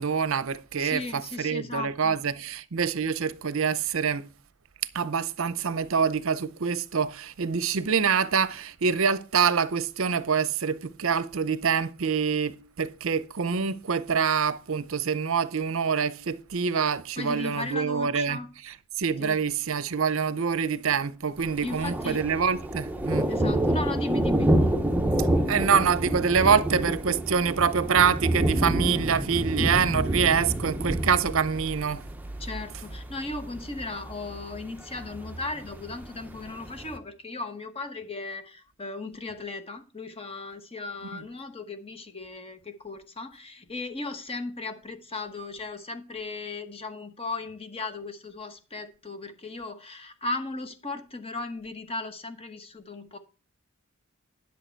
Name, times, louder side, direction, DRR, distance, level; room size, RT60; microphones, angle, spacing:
voice 1, 0.0-4.3 4.9-18.4 18.6-23.3 25.5-32.0, right 6 dB, 60° right, 0.6 m, -26 dB
voice 2, 0.8-2.2 17.2-18.5 19.2-19.4 21.6-22.2 23.3-24.5 32.4-53.2, left 3 dB, 25° left, 1.1 m, -36 dB
Thunder, 21.4-37.0, right 1 dB, 10° right, 0.8 m, -28 dB
11.0 x 6.7 x 4.5 m
head